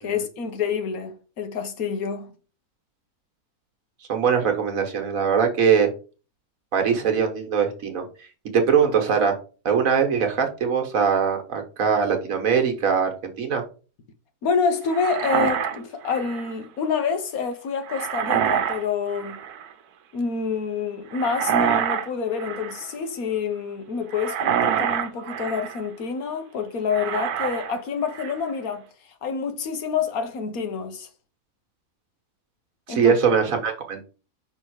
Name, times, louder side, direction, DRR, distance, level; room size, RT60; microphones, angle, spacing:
voice 1, 0.0-2.3 14.4-19.4 20.1-28.9 29.2-31.1 32.9-33.1, left 6 dB, 70° left, 1.4 m, -27 dB
voice 2, 4.1-5.9 6.7-8.0 8.5-9.4 9.6-13.6 32.9-34.0, right 6 dB, 65° right, 1.5 m, -21 dB
sound 1, 14.9-16.5 17.9-18.8 19.1-19.7 21.1-22.1 22.3-22.9 24.1-25.8 26.9-27.8 28.1-28.5, right 9 dB, 85° right, 1.2 m, -26 dB
5.7 x 3.5 x 4.6 m
omnidirectional pair, 1.6 m